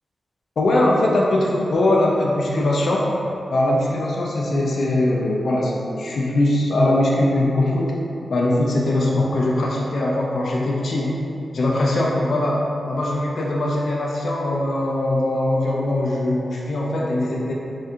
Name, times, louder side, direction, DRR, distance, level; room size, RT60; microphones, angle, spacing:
voice 1, 0.6-3.0 3.5-7.9 8.3-11.1 11.5-12.6 12.9-17.5, left 1 dB, 70° left, -3 dB, 0.4 m, -21 dB
4.3 x 2.5 x 2.3 m, 2.8 s
wide cardioid pair, 125°, 0 cm